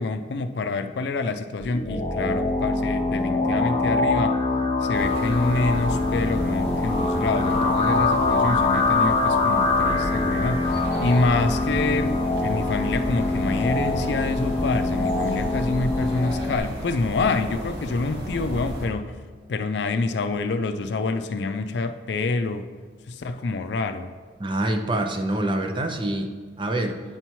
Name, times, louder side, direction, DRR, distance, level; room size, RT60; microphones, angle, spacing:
voice 1, 0.0-4.4 4.8-19.2 19.5-22.7 23.1-24.1, left 3 dB, 70° left, 8 dB, 0.4 m, -27 dB
sound 1, 1.6-16.6, left 3 dB, 35° left, 0.6 m, -24 dB
sound 2, 4.9-18.9, equal, 75° right, 1.5 m, -33 dB
voice 2, 24.4-27.0, right 1 dB, 25° right, 5 dB, 0.5 m, -26 dB
9.0 x 5.6 x 3.0 m, 1.5 s
head